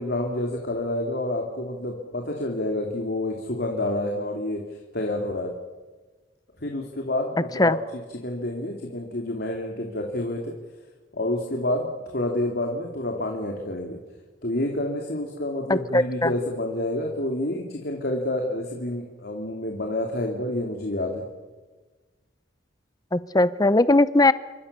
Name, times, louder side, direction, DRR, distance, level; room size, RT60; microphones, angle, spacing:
voice 1, 0.0-4.6 4.9-5.5 6.6-7.8 8.2-10.5 11.1-14.0 14.4-21.2, left 1 dB, 55° left, 1 dB, 3.2 m, -28 dB
voice 2, 15.7-16.3 23.1-24.3, left 2 dB, 20° left, 15 dB, 0.8 m, -19 dB
29.0 x 24.5 x 7.0 m, 1.3 s
head